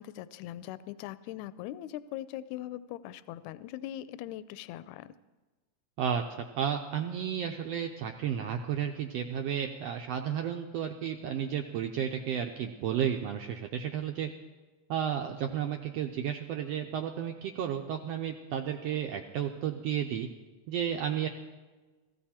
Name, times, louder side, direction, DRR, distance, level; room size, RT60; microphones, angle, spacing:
voice 1, 0.0-5.1, left 13 dB, 80° left, 15 dB, 1.8 m, -41 dB
voice 2, 6.0-14.3 14.9-20.3 20.7-21.3, right 9 dB, 80° right, 4 dB, 1.5 m, -32 dB
16.5 x 15.0 x 4.3 m, 1.2 s
omnidirectional pair, 3.6 m